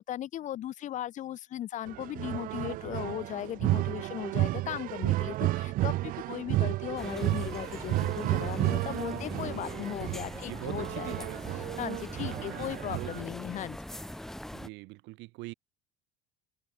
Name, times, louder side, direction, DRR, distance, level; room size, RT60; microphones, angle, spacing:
voice 1, 0.0-11.2 11.5-13.8, left 12 dB, 35° left, 2.9 m, -37 dB
sound 1, 1.9-13.2, right 17 dB, 40° right, 0.8 m, -32 dB
sound 2, 7.0-14.7, left 1 dB, ahead, 1.4 m, -42 dB
voice 2, 10.5-11.6 12.4-13.3 14.5-15.5, right 23 dB, 55° right, 6.8 m, -43 dB
cardioid pair, 170°, 21 cm